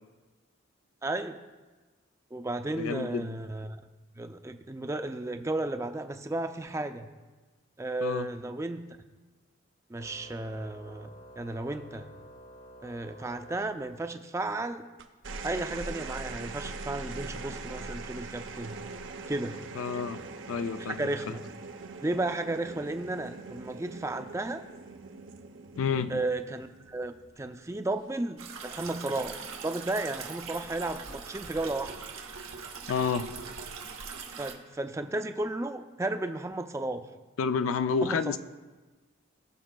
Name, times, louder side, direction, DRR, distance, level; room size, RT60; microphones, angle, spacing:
voice 1, 1.0-1.4 2.3-3.8 4.2-7.1 7.8-8.8 9.9-11.1 11.4-12.1 12.8-14.9 15.4-18.8 19.3-19.6 20.8-21.4 22.0-24.6 26.1-31.9 34.4-37.1 38.0-38.4, right 2 dB, 15° right, 8 dB, 0.3 m, -33 dB
voice 2, 2.7-3.3 8.0-8.3 19.8-20.2 20.5-21.1 25.8-26.2 32.9-33.3 37.4-38.4, left 5 dB, 85° left, 11 dB, 0.4 m, -29 dB
Organ, 9.9-14.5, right 1 dB, 60° left, 1.2 m, -51 dB
sound 1, 15.0-27.6 28.8-29.3, right 3 dB, 70° right, 0.6 m, -42 dB
sound 2, 28.4-34.5, right 5 dB, 90° right, 1.0 m, -41 dB
18.5 x 6.2 x 2.2 m, 1.3 s
head